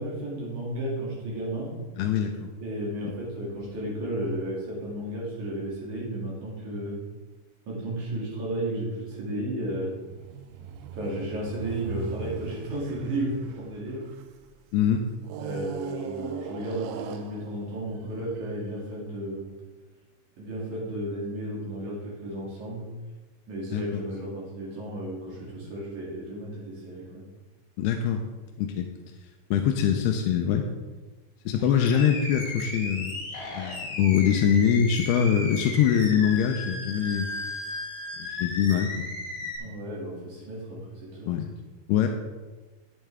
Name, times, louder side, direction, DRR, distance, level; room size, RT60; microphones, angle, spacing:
voice 1, 0.0-1.7 2.6-7.0 7.7-9.9 10.9-14.0 15.4-19.5 20.4-22.9 23.5-27.2 31.4-31.6 39.6-41.4, right 1 dB, 50° right, -5 dB, 3.4 m, -33 dB
voice 2, 2.0-2.5 14.7-15.0 23.7-24.0 27.8-28.2 28.6-28.9 29.5-30.7 31.5-33.2 33.5-37.3 38.2-39.1 39.6-39.7 41.3-41.5 41.9-42.1, left 8 dB, 85° left, 4 dB, 2.4 m, -23 dB
sound 1, 9.8-14.5 15.2-18.7, right 7 dB, 85° right, 2.3 m, -40 dB
Animal, 31.6-39.6, left 2 dB, 70° left, 1.3 m, -35 dB
10.5 x 8.6 x 3.4 m, 1.3 s
omnidirectional pair, 5.1 m